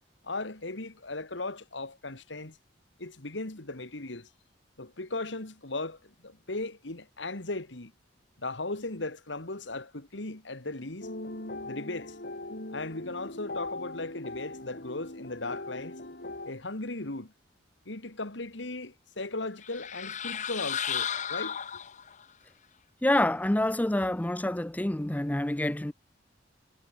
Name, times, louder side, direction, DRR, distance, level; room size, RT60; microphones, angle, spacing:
voice 1, 0.2-2.6 3.0-4.3 4.8-7.9 8.4-11.1 11.6-12.2 12.7-15.9 16.5-17.3 17.9-21.6, left 2 dB, 75° left, 2.4 m, -37 dB
sound 1, 11.0-16.5, left 2 dB, 60° left, 4.3 m, -40 dB
sound 2, 19.6-22.2, left 8 dB, 40° left, 1.0 m, -34 dB
voice 2, 23.0-25.9, left 1 dB, 10° left, 0.5 m, -27 dB
head